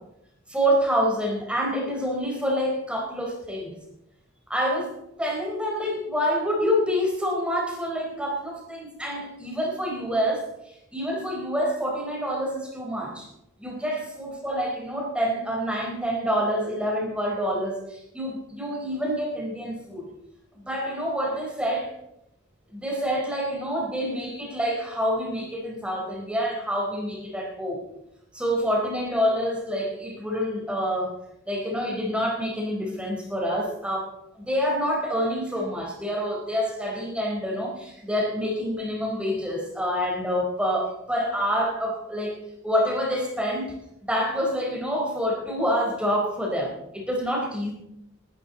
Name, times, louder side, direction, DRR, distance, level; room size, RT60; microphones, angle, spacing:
voice 1, 0.5-3.7 4.5-10.5 10.9-13.3 13.6-20.0 20.5-21.9 22.7-27.8 28.3-31.1 31.4-43.7 44.0-47.7, equal, 5° right, -1 dB, 4.3 m, -27 dB
18.5 x 13.0 x 4.2 m, 0.83 s
head